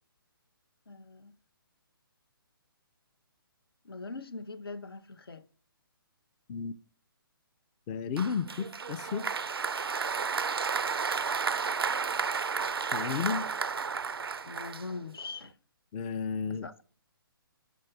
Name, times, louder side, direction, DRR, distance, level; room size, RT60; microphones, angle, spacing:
voice 1, 0.9-1.3 3.8-5.4 14.4-15.6 16.5-16.8, left 3 dB, 80° left, 0.7 m, -42 dB
voice 2, 7.9-9.3 12.9-13.5 15.9-16.7, left 6 dB, 20° left, 0.4 m, -33 dB
Applause, 8.2-15.3, right 5 dB, 80° right, 0.4 m, -32 dB
8.4 x 5.9 x 3.3 m
figure-of-eight pair, 140°, 12 cm